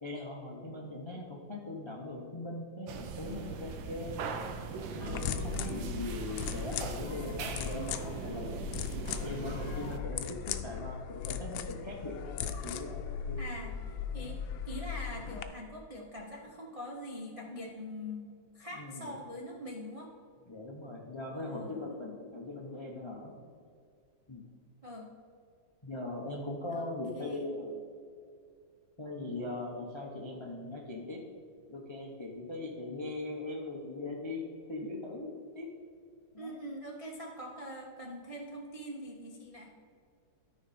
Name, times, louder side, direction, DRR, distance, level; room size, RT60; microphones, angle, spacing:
voice 1, 0.0-4.2 4.9-8.6 9.2-13.0 13.3-13.5 14.1-14.4 18.7-19.1 20.5-23.3 24.3-24.5 25.8-27.8 29.0-31.2 31.7-34.4 34.7-35.7 36.3-36.6, left 2 dB, 35° left, 0 dB, 0.4 m, -40 dB
sound 1, 2.9-10.0, right 5 dB, 85° right, 1.5 m, -40 dB
sound 2, 5.0-15.4, left 7 dB, 85° left, 1.3 m, -38 dB
voice 2, 13.4-13.8 14.1-20.1 21.3-21.9 24.8-25.1 26.7-26.9 27.1-27.4 36.4-39.7, left 1 dB, 45° right, -2 dB, 0.4 m, -43 dB
13.0 x 5.0 x 4.2 m, 2.3 s
omnidirectional pair, 2.1 m